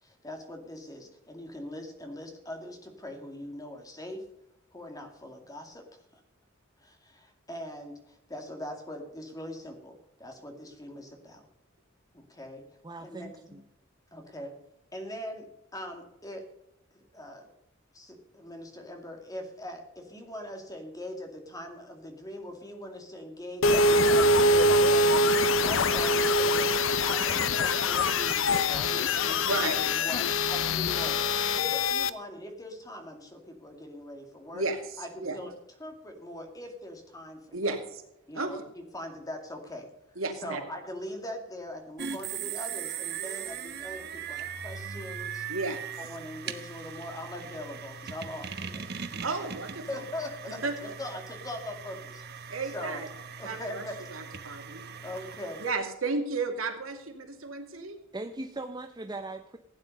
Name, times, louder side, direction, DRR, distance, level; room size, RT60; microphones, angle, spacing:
voice 1, 0.0-4.2 4.7-6.2 6.8-11.5 12.1-12.6 13.0-13.6 14.1-14.5 14.9-16.5 16.9-17.5 17.9-26.7 27.1-31.2 31.5-34.6 35.0-35.5 35.8-37.6 38.3-39.9 40.4-45.5 46.0-48.9 49.4-49.5 49.9-53.0 53.4-54.1 55.0-55.6, left 1 dB, 15° left, 2.3 m, -41 dB
voice 2, 12.8-13.6 58.1-59.6, right 2 dB, 20° right, 0.7 m, -39 dB
sound 1, 23.6-32.1, left 2 dB, 65° left, 0.7 m, -24 dB
voice 3, 34.5-35.4 37.5-38.0 38.3-38.6 40.2-40.6 45.5-45.8 49.2-50.0 50.6-50.7 52.5-53.1 53.4-54.8 55.6-58.0, right 3 dB, 80° right, 2.5 m, -33 dB
sound 2, 42.0-55.7, right 7 dB, 50° right, 1.1 m, -40 dB
16.0 x 9.5 x 5.4 m
head